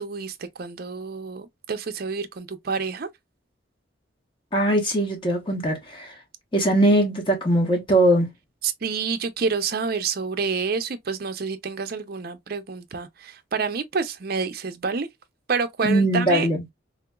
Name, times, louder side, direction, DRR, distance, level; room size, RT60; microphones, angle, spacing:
voice 1, 0.0-3.1 8.6-15.1 15.5-16.5, right 5 dB, 50° right, 0.5 m, -28 dB
voice 2, 4.5-6.1 6.5-8.3 15.8-16.6, right 1 dB, 25° left, 1.0 m, -21 dB
3.7 x 2.8 x 2.2 m
head